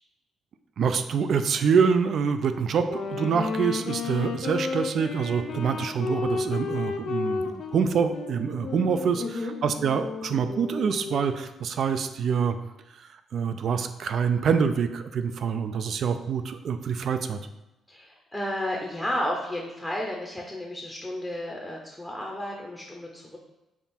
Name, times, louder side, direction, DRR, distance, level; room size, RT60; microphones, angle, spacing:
voice 1, 0.8-9.2 9.6-12.6 12.9-17.4, right 6 dB, 60° right, 9 dB, 0.3 m, -26 dB
Wind instrument woodwind instrument, 2.8-11.4, left 5 dB, 70° left, 0.4 m, -33 dB
voice 2, 9.2-9.5 17.9-23.4, left 1 dB, 10° left, -1 dB, 0.6 m, -32 dB
3.5 x 2.4 x 4.2 m, 0.98 s
cardioid pair, 90°, 0 cm